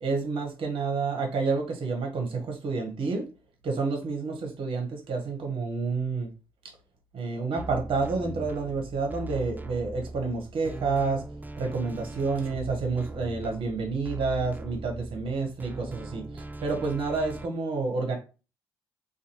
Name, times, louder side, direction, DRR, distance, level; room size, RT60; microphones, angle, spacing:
voice 1, 0.0-3.3 3.6-6.3 7.1-11.2 11.6-18.2, right 4 dB, 55° right, 0.8 m, -29 dB
sound 1, 7.6-17.5, right 2 dB, 15° right, 0.3 m, -40 dB
2.5 x 2.3 x 2.9 m
hypercardioid pair, 45°, 10 cm